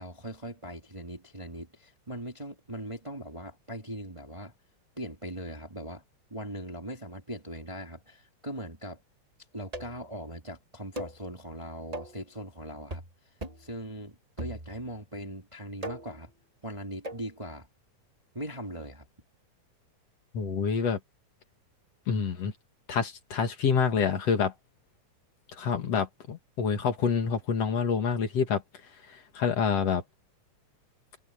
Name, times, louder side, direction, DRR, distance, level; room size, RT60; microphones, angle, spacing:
voice 1, 0.0-4.5 5.0-6.0 6.3-9.0 9.5-13.0 13.6-16.3 16.6-17.7 18.3-19.1, equal, 10° right, 1.7 m, -40 dB
sound 1, 9.7-10.1 11.0-11.2 11.9-12.2 12.9-13.1 13.4-13.7 14.4-15.0 15.8-16.2 17.0-17.3, right 1 dB, 45° right, 0.4 m, -39 dB
voice 2, 20.3-21.0 22.1-22.5 22.9-24.5 25.5-28.6 29.1-30.0, left 6 dB, 60° left, 2.7 m, -27 dB
omnidirectional pair, 3.4 m